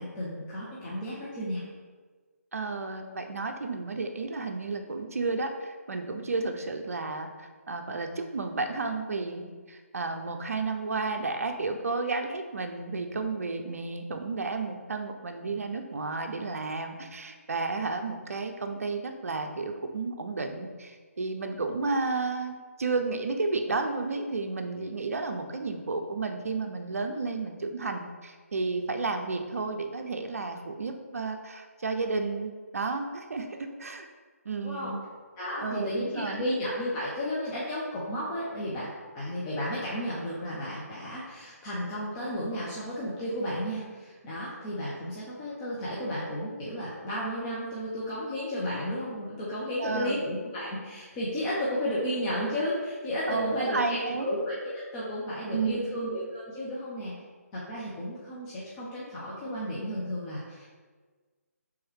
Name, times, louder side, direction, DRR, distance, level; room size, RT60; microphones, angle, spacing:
voice 1, 0.0-1.6 34.6-34.9 35.4-57.1 57.5-60.7, equal, 20° left, -7 dB, 0.6 m, -33 dB
voice 2, 2.5-22.5 22.8-34.1 34.4-35.0 35.6-36.4 49.8-50.3 53.3-54.3 55.5-56.0, right 3 dB, 65° right, 5 dB, 0.5 m, -32 dB
3.5 x 3.1 x 4.6 m, 1.4 s
figure-of-eight pair, 145°, 8 cm